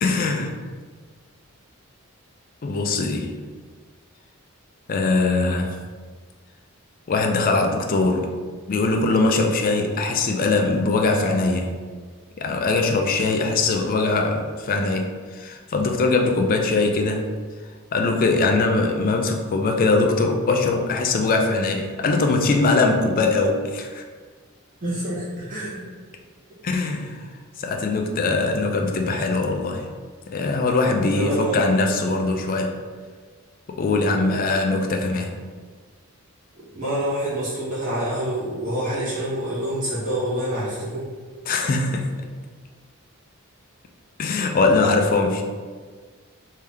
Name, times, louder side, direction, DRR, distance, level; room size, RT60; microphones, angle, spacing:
voice 1, 0.0-0.5 2.6-3.3 4.9-5.8 7.1-8.3 8.7-11.8 12.4-17.2 17.9-24.0 26.6-27.3 27.6-29.9 30.3-32.8 33.7-35.3 41.5-42.1 44.2-45.4, left 3 dB, 40° left, 3 dB, 0.4 m, -21 dB
voice 2, 24.8-25.8 31.1-31.7 36.6-41.0, right 1 dB, 40° right, -11 dB, 1.3 m, -27 dB
3.3 x 2.7 x 3.5 m, 1.5 s
head